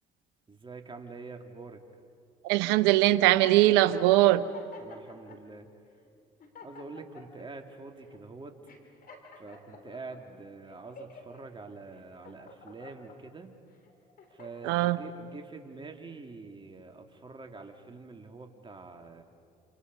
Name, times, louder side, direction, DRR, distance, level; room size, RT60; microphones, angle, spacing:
voice 1, 0.5-1.8 4.8-5.7 6.6-8.5 9.3-13.6 14.3-19.2, right 3 dB, 25° right, 4 dB, 2.9 m, -45 dB
voice 2, 2.4-4.4 14.6-15.0, right 16 dB, 85° right, 14 dB, 0.9 m, -21 dB
sound 1, 4.2-5.4 6.0-6.1 6.4-7.5 8.0-8.2 8.7-10.2 10.7-11.4 11.9-13.2 13.7-14.7, left 3 dB, 55° left, 3.6 m, -51 dB
28.0 x 28.0 x 5.5 m, 2.3 s
supercardioid pair, 70°, 18 cm